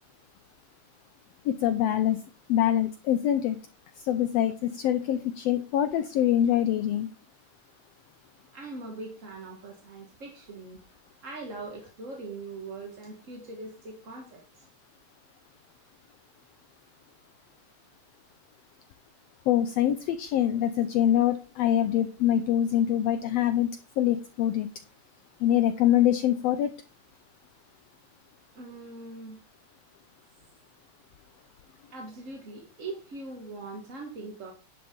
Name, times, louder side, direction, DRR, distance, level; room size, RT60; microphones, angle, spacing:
voice 1, 1.4-2.2 2.5-3.6 4.0-7.1 19.5-23.7 24.0-24.7 25.4-26.7, left 11 dB, 75° left, 10 dB, 1.6 m, -24 dB
voice 2, 8.5-10.8 11.2-14.7 28.5-29.4 31.9-34.5, right 3 dB, 35° right, 1 dB, 1.4 m, -41 dB
11.0 x 6.0 x 5.2 m, 0.37 s
omnidirectional pair, 3.3 m